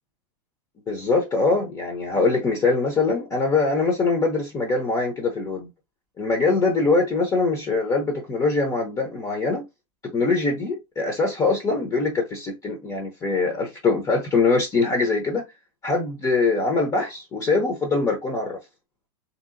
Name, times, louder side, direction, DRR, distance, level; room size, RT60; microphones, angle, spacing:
voice 1, 0.9-5.7 6.2-9.7 10.0-15.5 15.8-18.6, left 3 dB, 20° left, 0.7 m, -23 dB
2.9 x 2.8 x 2.5 m
hypercardioid pair, 135°, 19 cm